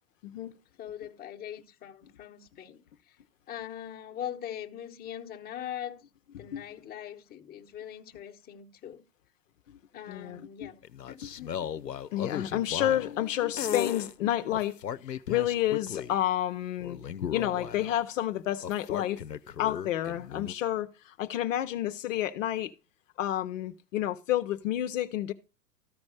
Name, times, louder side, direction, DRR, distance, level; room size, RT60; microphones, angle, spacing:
voice 1, 0.2-0.5 6.3-6.6 9.7-9.8 10.1-10.7 11.2-11.3 12.1-17.0 17.3-19.2 19.6-22.7 23.2-25.3, left 12 dB, 55° left, 0.8 m, -30 dB
voice 2, 0.8-3.2 3.5-6.1 6.4-9.0 9.9-10.8 11.1-11.6, left 10 dB, 20° left, 1.1 m, -41 dB
sound 1, 10.8-13.2 13.6-14.1 14.5-16.2 16.8-18.0 18.6-20.5, left 8 dB, 85° left, 0.7 m, -36 dB
14.0 x 5.2 x 6.3 m
figure-of-eight pair, 100°, 48 cm